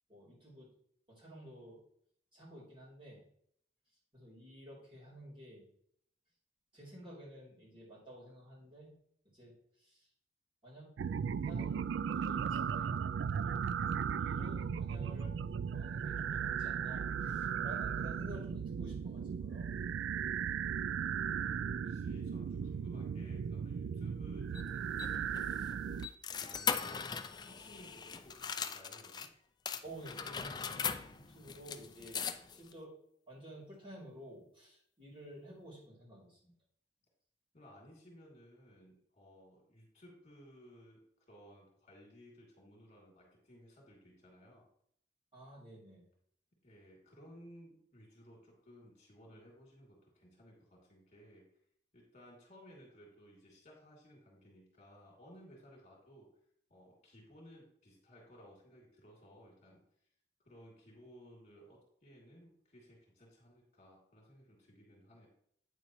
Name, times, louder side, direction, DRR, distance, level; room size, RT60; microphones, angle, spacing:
voice 1, 0.1-0.7 1.1-1.8 2.3-3.2 4.1-5.7 6.7-8.9 9.3-10.1 10.6-10.9 11.4-12.9 13.4-13.7 14.2-15.4 15.7-19.7 29.8-32.2 32.5-32.9 33.3-36.5 45.3-46.0, right 1 dB, 30° right, -7 dB, 3.3 m, -52 dB
sound 1, 11.0-26.1, right 7 dB, 85° right, 0.3 m, -36 dB
voice 2, 21.3-25.6 26.3-29.3 37.5-44.7 46.6-51.5 51.9-56.3 56.7-59.8 60.4-65.3, equal, 40° left, -2 dB, 2.7 m, -58 dB
sound 2, 24.5-29.3 29.7-32.7, left 7 dB, 25° left, 0.4 m, -40 dB
9.0 x 6.9 x 3.1 m, 0.67 s
head